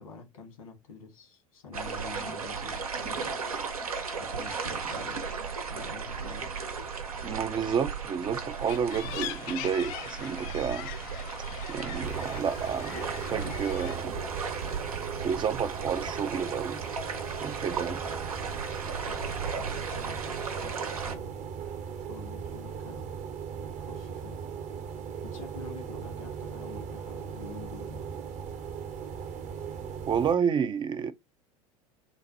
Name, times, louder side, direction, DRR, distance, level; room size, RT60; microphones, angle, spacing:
voice 1, 0.0-3.4 4.1-5.3 5.7-6.5 19.0-21.5 22.0-23.2 23.8-24.4 25.2-28.1, left 3 dB, 80° left, 1.7 m, -47 dB
sound 1, 1.7-21.2, right 5 dB, 85° right, 0.8 m, -35 dB
voice 2, 7.2-10.9 11.7-14.1 15.2-16.8 17.4-18.0 30.1-31.1, right 7 dB, 25° right, 0.4 m, -30 dB
sound 2, 8.4-14.0, left 12 dB, 55° left, 0.5 m, -41 dB
sound 3, 12.0-30.4, right 7 dB, 40° right, 0.8 m, -39 dB
3.8 x 2.1 x 3.9 m
hypercardioid pair, 80°, 18 cm